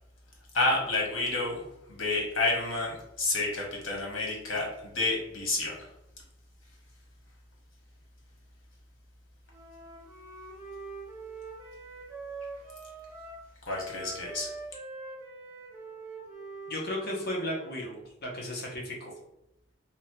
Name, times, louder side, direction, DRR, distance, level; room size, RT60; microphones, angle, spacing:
voice 1, 0.5-5.9 13.7-14.5, left 2 dB, 80° left, -2 dB, 1.0 m, -30 dB
Wind instrument woodwind instrument, 9.5-17.9, right 3 dB, 15° right, 0.9 m, -44 dB
voice 2, 16.7-19.1, left 1 dB, 55° left, -1 dB, 0.6 m, -35 dB
2.8 x 2.0 x 2.8 m, 0.84 s
head